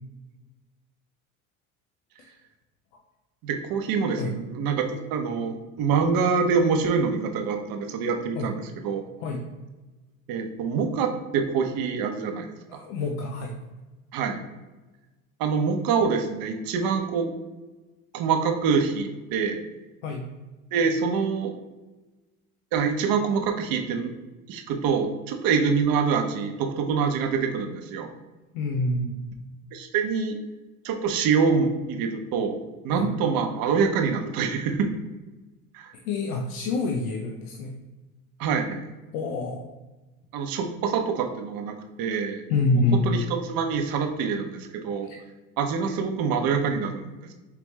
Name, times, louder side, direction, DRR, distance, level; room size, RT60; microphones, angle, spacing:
voice 1, 3.4-9.0 10.3-12.8 14.1-14.4 15.4-17.3 18.1-19.6 20.7-21.5 22.7-24.1 24.5-28.1 29.7-30.4 30.8-32.6 32.8-34.9 35.7-35.9 38.4-38.9 40.3-42.4 42.9-45.1 45.6-47.2, right 5 dB, 55° right, 5 dB, 0.8 m, -25 dB
voice 2, 12.7-13.5 20.0-20.3 28.5-29.2 32.9-33.1 36.1-37.7 39.1-39.7 42.5-43.0 45.0-45.2, left 3 dB, 80° left, 1 dB, 0.7 m, -27 dB
4.8 x 3.4 x 3.1 m, 1.1 s
supercardioid pair, 85°, 41 cm